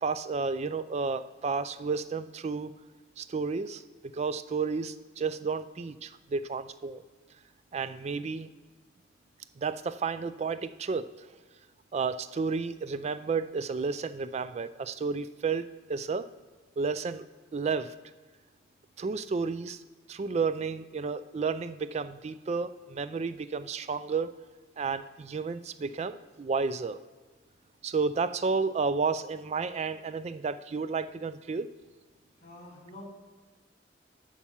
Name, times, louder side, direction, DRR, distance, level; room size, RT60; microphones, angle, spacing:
voice 1, 0.0-2.7 3.2-3.8 4.1-7.0 7.7-8.5 9.6-11.3 11.9-16.3 16.8-17.3 17.5-17.9 19.0-19.8 20.1-24.4 24.8-27.0 27.8-31.7, right 4 dB, 35° right, 14 dB, 0.3 m, -31 dB
voice 2, 32.4-33.0, left 1 dB, 40° left, -7 dB, 3.1 m, -47 dB
8.8 x 6.0 x 5.6 m, 1.4 s
head